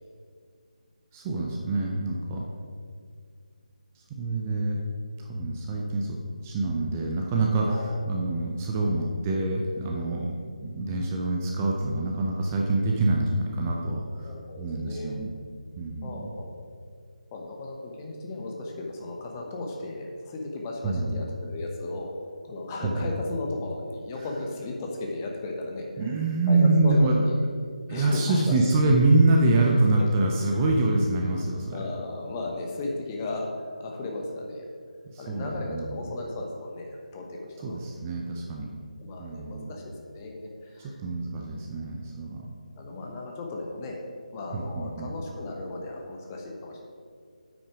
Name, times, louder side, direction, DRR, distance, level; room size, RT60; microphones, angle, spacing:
voice 1, 1.1-2.4 4.1-4.8 5.3-6.2 6.4-14.3 14.6-15.3 15.8-16.3 20.8-21.2 22.8-23.1 26.0-27.2 27.9-31.8 35.1-36.0 37.6-38.7 39.2-39.7 40.8-42.4 44.5-45.1, right 2 dB, 20° right, -1 dB, 0.6 m, -25 dB
voice 2, 7.6-8.0 14.2-15.2 16.0-16.5 17.3-22.1 22.5-26.1 26.5-27.5 27.9-28.6 30.6-30.7 31.7-34.6 35.2-37.8 39.0-41.0 42.8-44.0 44.3-46.8, left 2 dB, 20° left, 0 dB, 1.0 m, -35 dB
8.6 x 6.1 x 4.9 m, 2.1 s
figure-of-eight pair, 155°, 4 cm